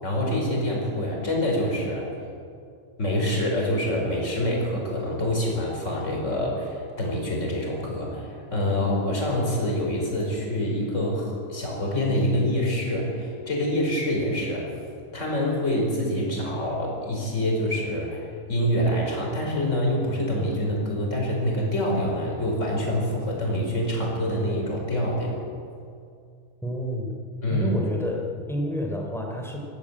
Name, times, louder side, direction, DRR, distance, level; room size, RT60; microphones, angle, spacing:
voice 1, 0.0-2.1 3.0-14.7 15.1-18.2 18.5-25.4 27.4-27.8, left 1 dB, 15° left, -1 dB, 4.9 m, -26 dB
voice 2, 26.6-27.1 27.5-29.7, equal, ahead, 0 dB, 2.1 m, -29 dB
21.0 x 15.0 x 8.8 m, 2.4 s
omnidirectional pair, 5.2 m